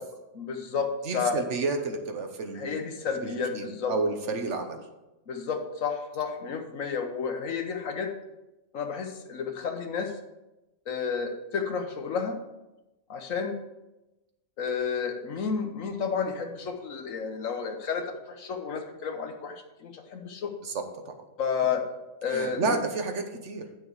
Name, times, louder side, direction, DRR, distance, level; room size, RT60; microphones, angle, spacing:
voice 1, 0.3-1.4 2.5-3.9 5.3-8.1 8.7-10.1 10.9-12.4 13.1-13.6 14.6-20.5 21.4-21.9 22.2-22.8, left 6 dB, 90° left, 4 dB, 1.5 m, -31 dB
voice 2, 1.1-2.7 3.2-4.8 20.6-21.1 22.3-23.7, right 3 dB, 65° right, 5 dB, 1.3 m, -31 dB
9.1 x 6.3 x 4.8 m, 0.99 s
omnidirectional pair, 1.3 m